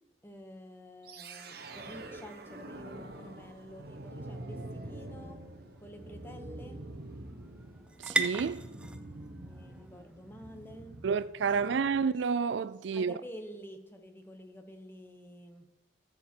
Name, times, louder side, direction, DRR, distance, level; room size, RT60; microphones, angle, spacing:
voice 1, 0.2-5.4 5.8-6.8 9.4-11.0 11.5-11.8 12.9-15.6, equal, 10° left, 1.0 m, -49 dB
sound 1, 1.0-12.2, right 1 dB, 50° right, 1.0 m, -46 dB
sound 2, 4.9-12.4, right 2 dB, 5° right, 0.5 m, -41 dB
voice 2, 8.0-8.6 11.0-13.1, right 5 dB, 70° right, 0.4 m, -30 dB
14.0 x 7.2 x 4.5 m
head